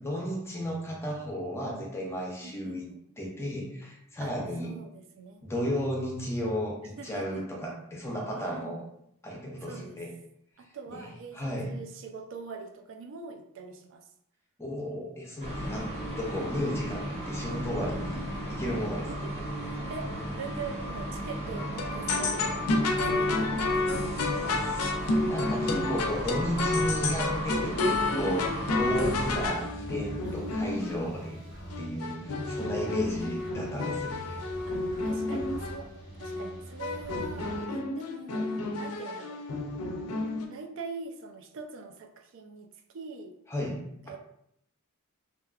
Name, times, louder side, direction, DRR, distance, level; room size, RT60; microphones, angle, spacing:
voice 1, 0.0-2.9 3.2-4.7 5.4-8.8 9.2-10.1 11.0-11.7 14.6-18.2 18.5-19.1 24.5-24.6 25.0-31.4 31.8-34.4 43.5-43.8, equal, 10° left, -1 dB, 0.5 m, -34 dB
voice 2, 2.4-3.0 4.2-4.3 4.6-5.4 7.0-7.5 8.3-8.8 9.6-10.0 10.6-14.1 18.1-18.5 19.1-19.3 19.9-24.0 24.5-25.1 27.6-28.1 30.2-30.9 32.0-32.2 32.5-33.2 34.7-34.8 35.0-38.5 38.8-39.4 40.5-43.3 44.0-44.4, right 4 dB, 60° right, 5 dB, 0.3 m, -43 dB
sound 1, 15.4-29.5, right 1 dB, 30° right, 0.7 m, -35 dB
sound 2, 21.6-31.0 31.7-35.8 36.2-36.5 36.8-40.5, left 2 dB, 90° left, 0.4 m, -30 dB
sound 3, 28.5-37.6, right 1 dB, 80° right, 1.5 m, -43 dB
2.6 x 2.3 x 2.3 m, 0.74 s
head